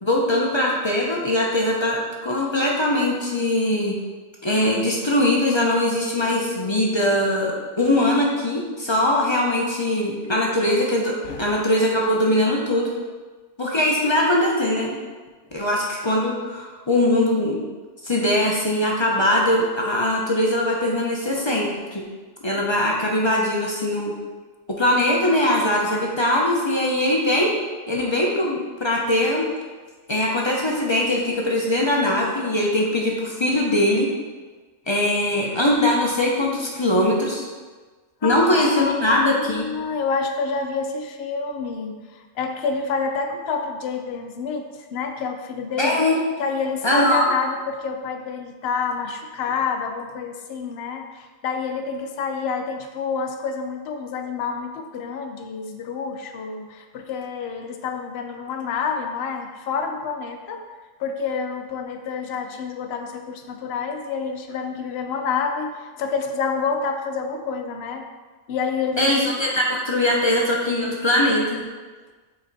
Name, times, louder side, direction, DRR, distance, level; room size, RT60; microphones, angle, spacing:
voice 1, 0.0-4.0 4.4-12.9 13.6-15.0 15.5-17.6 18.0-22.1 22.4-24.1 24.7-27.5 27.9-29.4 30.1-34.1 34.9-37.5 38.2-39.6 45.8-46.2 46.8-47.3 69.0-71.7, left 1 dB, 30° left, -3 dB, 0.6 m, -21 dB
voice 2, 38.2-46.0 46.4-60.6 61.0-68.0 68.5-69.1, left 5 dB, 60° left, 5 dB, 0.8 m, -28 dB
5.7 x 4.2 x 4.0 m, 1.4 s
omnidirectional pair, 1.4 m